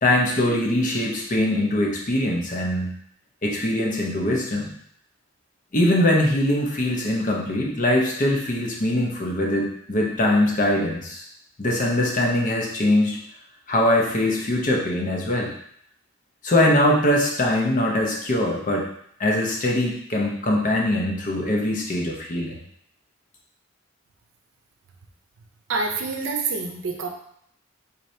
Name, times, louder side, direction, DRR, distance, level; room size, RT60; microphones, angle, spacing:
voice 1, 0.0-2.9 3.4-4.7 5.7-11.2 11.6-13.2 13.7-15.5 16.4-18.9 19.2-22.6, left 1 dB, 40° left, -1 dB, 0.7 m, -22 dB
voice 2, 25.7-27.1, right 4 dB, 75° right, 3 dB, 0.6 m, -27 dB
4.1 x 2.7 x 3.2 m, 0.69 s
head